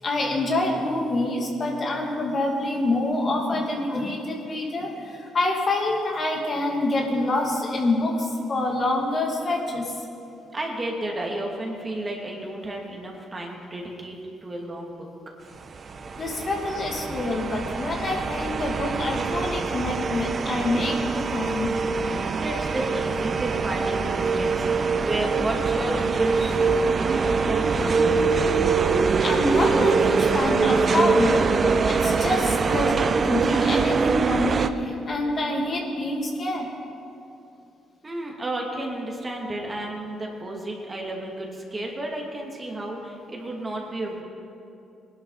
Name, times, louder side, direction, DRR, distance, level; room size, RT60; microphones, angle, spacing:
voice 1, 0.0-9.9 16.1-21.8 22.1-22.3 28.9-29.0 29.2-36.7, left 2 dB, 45° left, 0 dB, 2.4 m, -26 dB
voice 2, 10.5-15.1 22.4-28.3 38.0-44.2, right 1 dB, 30° right, -1 dB, 2.5 m, -32 dB
sound 1, 15.8-34.7, right 4 dB, 45° right, 0.6 m, -23 dB
19.5 x 11.5 x 4.1 m, 2.7 s
supercardioid pair, 70°, 0 cm